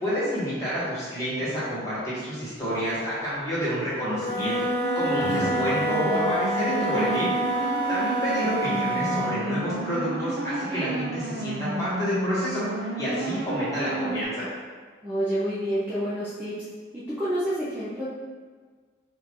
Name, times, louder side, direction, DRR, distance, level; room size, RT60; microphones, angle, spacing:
voice 1, 0.0-4.6 4.9-7.3 7.9-12.6 13.0-14.4, equal, 20° left, -10 dB, 1.4 m, -29 dB
Wind instrument woodwind instrument, 4.0-9.4, right 1 dB, 35° left, 0.9 m, -27 dB
sound 1, 4.4-14.2, right 2 dB, 70° right, 0.5 m, -32 dB
sound 2, 5.1-8.9, right 1 dB, 70° left, 0.6 m, -39 dB
voice 2, 5.1-5.5 15.0-16.6 16.9-18.0, equal, 10° right, -11 dB, 0.5 m, -29 dB
4.3 x 2.5 x 3.6 m, 1.5 s
head